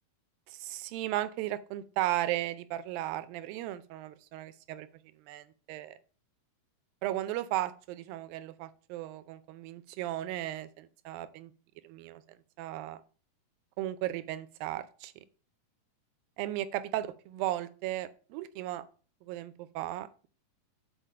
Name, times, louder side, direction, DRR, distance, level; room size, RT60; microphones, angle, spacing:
voice 1, 0.5-4.9 5.2-6.0 7.0-11.5 11.8-12.2 12.6-13.0 13.8-15.1 16.4-18.9 19.2-20.3, right 14 dB, 80° right, 13 dB, 2.3 m, -35 dB
7.3 x 4.5 x 5.6 m, 0.39 s
omnidirectional pair, 4.2 m